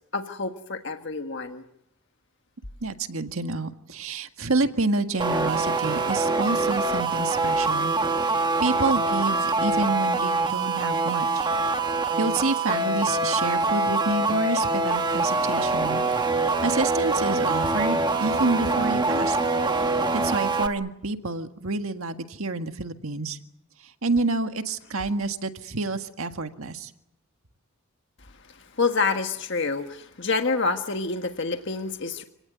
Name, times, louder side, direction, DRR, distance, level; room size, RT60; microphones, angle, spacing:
voice 1, 0.1-1.6 28.5-32.2, left 4 dB, 55° left, 5 dB, 1.5 m, -28 dB
voice 2, 2.8-7.9 8.3-11.5 12.2-16.0 16.4-19.4 20.2-23.4 23.8-26.9, right 3 dB, 70° right, 7 dB, 1.8 m, -28 dB
sound 1, 5.2-20.7, right 3 dB, 20° right, 1.2 m, -24 dB
29.0 x 18.0 x 9.5 m, 0.77 s
head